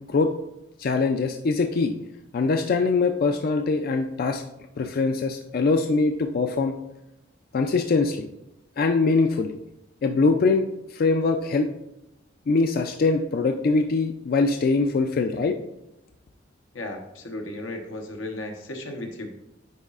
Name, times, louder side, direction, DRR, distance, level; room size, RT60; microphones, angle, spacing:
voice 1, 0.8-1.9 2.3-4.4 4.8-6.8 7.5-8.3 8.8-9.6 10.0-10.6 10.9-11.7 12.5-15.6, left 3 dB, 50° left, 5 dB, 0.4 m, -22 dB
voice 2, 16.7-19.3, left 1 dB, 85° left, 3 dB, 1.0 m, -35 dB
9.6 x 4.0 x 2.4 m, 0.87 s
head